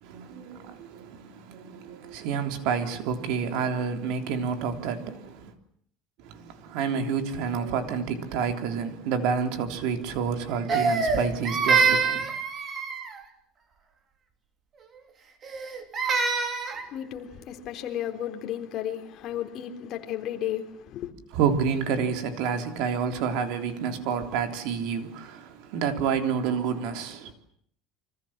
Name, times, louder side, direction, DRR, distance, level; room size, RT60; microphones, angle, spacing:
voice 1, 0.0-5.5 6.2-12.2 21.3-27.3, right 6 dB, 60° right, 3.4 m, -29 dB
Crying sobbing, 10.7-13.2 15.4-16.9, right 5 dB, 25° right, 2.9 m, -25 dB
voice 2, 16.7-21.1, left 11 dB, 40° left, 3.8 m, -34 dB
30.0 x 25.0 x 7.5 m
cardioid pair, 170°, 0 cm